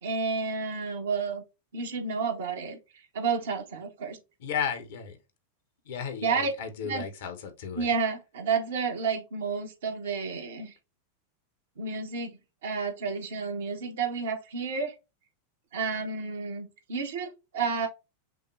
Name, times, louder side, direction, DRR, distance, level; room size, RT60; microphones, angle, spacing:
voice 1, 0.0-1.4 1.7-2.8 3.1-4.2 6.2-6.5 6.8-7.0 7.7-10.8 11.8-14.9 15.7-17.9, right 5 dB, 60° right, 1.1 m, -31 dB
voice 2, 4.4-5.2 5.9-7.9, left 7 dB, 55° left, 1.0 m, -34 dB
5.9 x 2.2 x 3.1 m
figure-of-eight pair, 90°, 0 cm